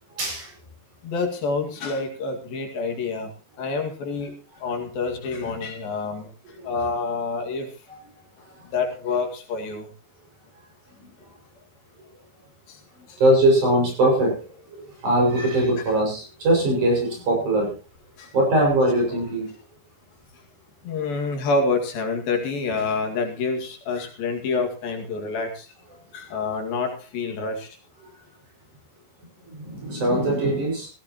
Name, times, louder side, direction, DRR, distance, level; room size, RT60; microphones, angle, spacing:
voice 1, 0.2-0.5 13.2-14.4 15.0-17.7 18.3-19.5 29.5-30.9, right 1 dB, 55° right, -1 dB, 7.7 m, -21 dB
voice 2, 1.0-3.3 3.6-4.4 4.6-6.3 6.6-7.7 8.7-9.9 12.7-12.8 18.2-18.3 20.8-25.7 26.1-27.8, left 4 dB, 75° left, 3 dB, 4.1 m, -27 dB
17.5 x 16.0 x 3.0 m, 0.34 s
omnidirectional pair, 4.2 m